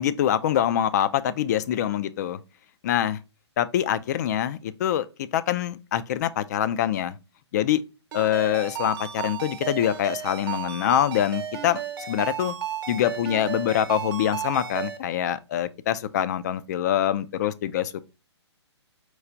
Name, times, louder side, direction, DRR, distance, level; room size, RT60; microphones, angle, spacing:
voice 1, 0.0-2.4 2.8-3.2 3.6-7.2 7.5-7.8 8.1-11.8 12.1-12.6 12.9-18.1, left 10 dB, 40° left, 0.4 m, -25 dB
Ringtone, 8.1-15.0, right 9 dB, 50° right, 0.9 m, -34 dB
4.6 x 2.4 x 3.9 m
figure-of-eight pair, 130°, 15 cm